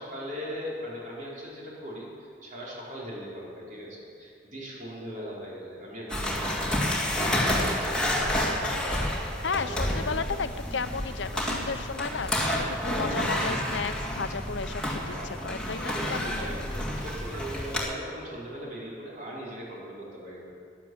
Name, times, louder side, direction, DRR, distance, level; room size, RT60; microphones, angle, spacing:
voice 1, 0.0-7.0 7.4-8.2 8.9-9.2 9.5-11.0 11.9-12.2 14.5-14.6 15.0-15.3 15.8-20.6, equal, 45° right, -5 dB, 4.4 m, -40 dB
sound 1, 6.1-17.8, left 1 dB, 5° left, 2.1 m, -29 dB
voice 2, 9.4-16.5, left 4 dB, 75° left, 11 dB, 0.7 m, -34 dB
12.0 x 11.0 x 7.9 m, 2.4 s
head